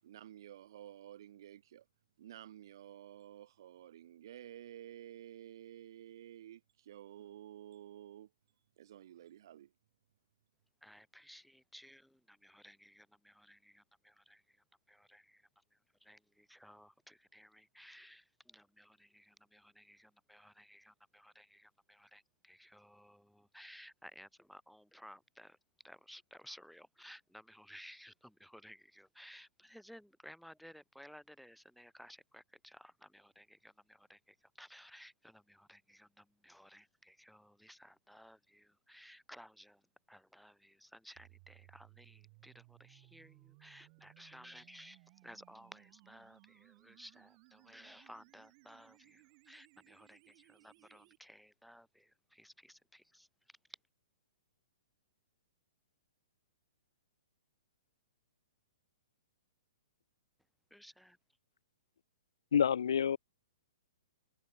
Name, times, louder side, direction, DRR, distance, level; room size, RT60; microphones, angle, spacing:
voice 1, 0.0-1.9 2.2-8.3 8.8-9.7, right 11 dB, 55° right, 6.2 m, -52 dB
voice 2, 10.8-25.6 25.8-53.8 60.7-61.2, equal, ahead, 6.7 m, -58 dB
sound 1, 41.2-51.2, right 33 dB, 35° right, 7.5 m, -63 dB
voice 3, 62.5-63.2, left 8 dB, 80° left, 2.6 m, -28 dB
hypercardioid pair, 155°, 3 cm